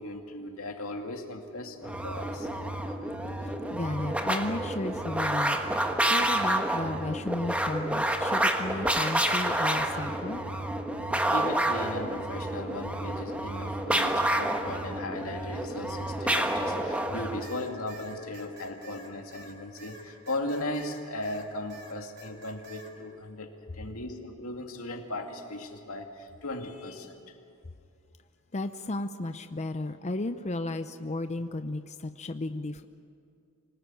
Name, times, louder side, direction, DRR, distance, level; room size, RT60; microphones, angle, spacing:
voice 1, 0.0-2.5 8.8-9.0 11.3-27.2, left 1 dB, 90° left, 3 dB, 2.5 m, -37 dB
sound 1, 1.8-17.5, right 1 dB, 5° right, 1.4 m, -29 dB
voice 2, 3.7-5.6 6.1-10.4 28.5-32.9, left 2 dB, 35° left, 8 dB, 0.6 m, -34 dB
sound 2, 17.4-21.4 21.7-22.9, right 1 dB, 50° right, 2.9 m, -48 dB
26.0 x 19.0 x 9.1 m, 2.4 s
head